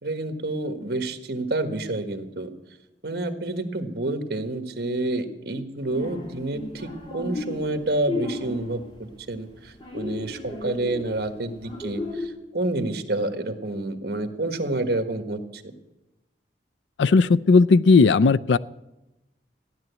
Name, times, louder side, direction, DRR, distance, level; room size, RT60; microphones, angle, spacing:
voice 1, 0.0-2.5 3.0-15.6, right 2 dB, 60° right, 8 dB, 1.5 m, -29 dB
sound 1, 5.8-9.3 9.6-12.3, left 2 dB, 30° left, 3.0 m, -34 dB
voice 2, 17.0-18.6, left 4 dB, 90° left, 17 dB, 0.5 m, -16 dB
15.0 x 11.0 x 8.2 m, 0.98 s
head